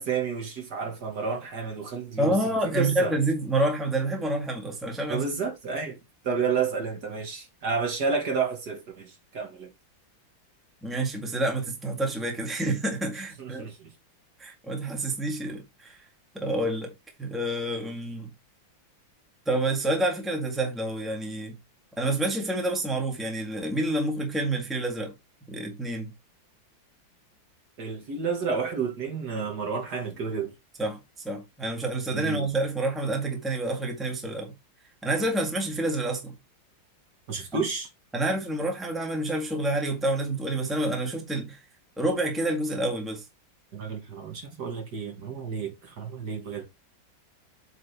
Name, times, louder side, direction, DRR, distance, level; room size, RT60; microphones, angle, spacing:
voice 1, 0.0-2.4 2.6-3.1 5.1-6.0 6.2-9.7 13.4-13.9 27.8-30.5 32.1-32.5 37.3-37.9 43.7-46.7, right 5 dB, 55° right, 2.1 m, -30 dB
voice 2, 2.2-5.2 10.8-13.7 14.4-16.0 16.3-16.9 17.2-18.3 19.4-21.6 22.0-25.1 25.5-26.1 30.8-31.0 31.2-34.5 35.0-36.3 37.5-37.6 38.1-41.6 42.0-43.2, right 1 dB, ahead, 1.7 m, -28 dB
7.9 x 4.1 x 4.1 m
omnidirectional pair, 2.1 m